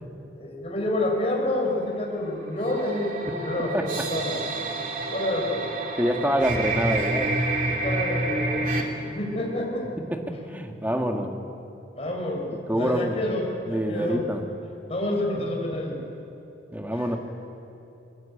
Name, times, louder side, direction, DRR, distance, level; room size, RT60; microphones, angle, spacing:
voice 1, 0.4-4.4 5.1-5.7 7.7-9.9 11.9-14.2 14.9-16.0 17.0-17.2, left 1 dB, 35° left, 0 dB, 5.0 m, -29 dB
sound 1, 2.6-8.8, right 2 dB, 45° right, 2.5 m, -28 dB
voice 2, 6.0-7.4 10.3-11.3 12.7-13.2 13.7-14.4 15.3-15.5 16.7-17.2, equal, 10° right, 3 dB, 1.7 m, -26 dB
22.5 x 21.0 x 8.5 m, 2.9 s
head